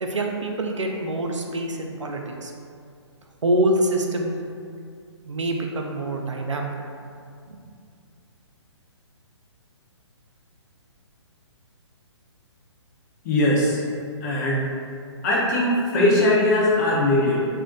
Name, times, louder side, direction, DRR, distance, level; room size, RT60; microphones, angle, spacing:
voice 1, 0.0-2.5 3.4-4.3 5.2-6.7 7.5-7.6, right 1 dB, 90° right, 2 dB, 0.4 m, -25 dB
voice 2, 13.2-13.8 14.2-14.7 15.2-17.5, left 1 dB, 35° left, -5 dB, 0.7 m, -20 dB
2.5 x 2.1 x 3.7 m, 2.3 s
figure-of-eight pair, 130°, 15 cm